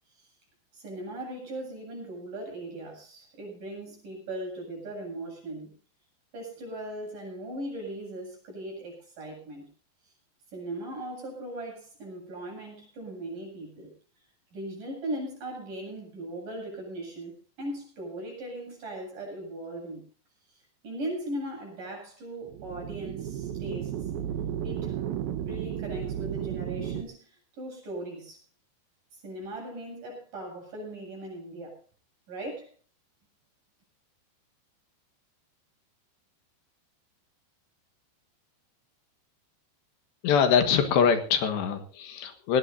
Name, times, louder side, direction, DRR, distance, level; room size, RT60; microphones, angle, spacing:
voice 1, 0.7-5.7 6.3-9.7 10.5-13.9 14.5-20.0 20.5-20.6 20.8-24.0 24.6-25.1 25.5-28.4 29.1-31.8 32.3-32.7, right 1 dB, 45° right, 0 dB, 9.2 m, -38 dB
sound 1, 22.4-27.0, right 10 dB, 70° right, 2.6 m, -33 dB
voice 2, 40.2-42.6, left 7 dB, 75° left, 7 dB, 3.7 m, -23 dB
21.0 x 18.5 x 2.7 m, 0.37 s
omnidirectional pair, 5.1 m